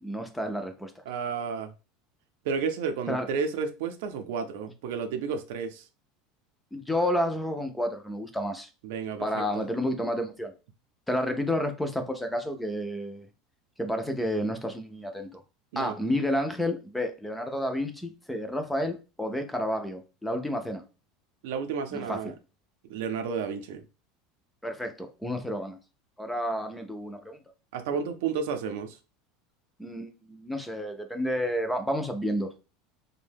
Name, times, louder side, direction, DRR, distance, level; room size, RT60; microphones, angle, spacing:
voice 1, 0.0-0.9 3.1-3.2 6.7-8.7 9.2-10.5 11.1-13.3 13.8-15.4 15.8-20.8 21.9-22.3 24.6-25.8 26.2-27.4 29.8-32.5, equal, 5° left, 0.3 m, -30 dB
voice 2, 1.1-1.7 2.4-5.8 8.8-9.7 15.7-15.9 21.4-22.3 22.9-23.8 27.7-29.0, right 6 dB, 70° right, 0.5 m, -32 dB
2.6 x 2.1 x 3.3 m
supercardioid pair, 170°, 0 cm